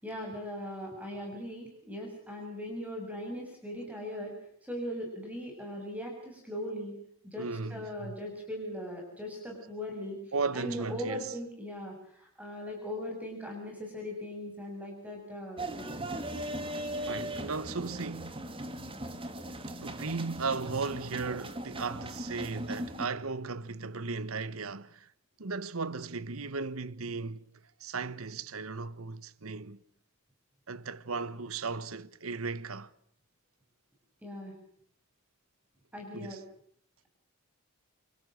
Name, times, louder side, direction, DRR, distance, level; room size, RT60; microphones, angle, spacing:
voice 1, 0.0-7.0 7.2-15.9 34.2-34.6 35.9-36.4, left 1 dB, 5° right, 6.9 m, -39 dB
voice 2, 7.4-8.2 10.3-11.3 17.0-18.5 19.8-25.1 25.4-27.4 27.8-29.8 30.7-32.9 36.1-36.4, right 4 dB, 80° right, 1.2 m, -36 dB
sound 1, 15.6-23.1, right 1 dB, 25° right, 2.5 m, -39 dB
28.5 x 26.0 x 6.4 m
head